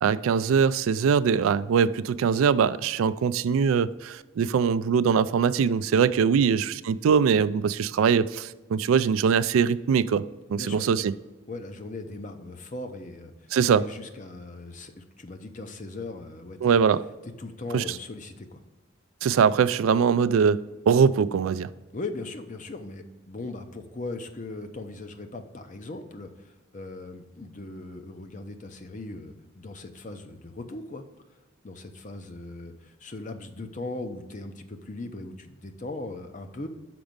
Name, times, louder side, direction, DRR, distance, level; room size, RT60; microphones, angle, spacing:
voice 1, 0.0-10.2 10.5-11.1 13.5-13.9 16.6-17.0 17.7-17.8 19.2-21.7, right 6 dB, 90° right, 0.3 m, -22 dB
voice 2, 10.5-11.0 11.5-16.8 17.4-18.6 21.9-31.0 31.6-36.7, left 2 dB, 40° left, 0.6 m, -39 dB
6.0 x 5.1 x 5.2 m
head